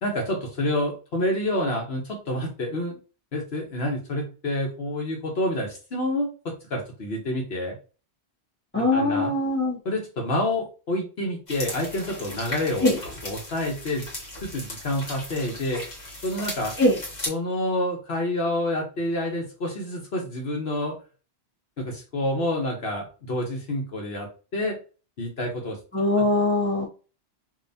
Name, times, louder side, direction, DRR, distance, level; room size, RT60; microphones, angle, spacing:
voice 1, 0.0-3.0 3.3-7.8 8.8-9.3 9.8-12.9 13.2-14.1 14.4-15.8 16.2-16.7 17.3-20.9 21.8-24.8 25.2-25.8 26.2-26.3, left 1 dB, 70° left, 1 dB, 1.3 m, -28 dB
voice 2, 8.7-9.8 12.8-13.0 16.8-17.0 25.9-26.9, left 2 dB, 10° left, -3 dB, 1.5 m, -21 dB
sound 1, 11.5-17.3, left 1 dB, 40° left, 1.3 m, -37 dB
5.3 x 2.8 x 2.8 m, 0.35 s
omnidirectional pair, 1.1 m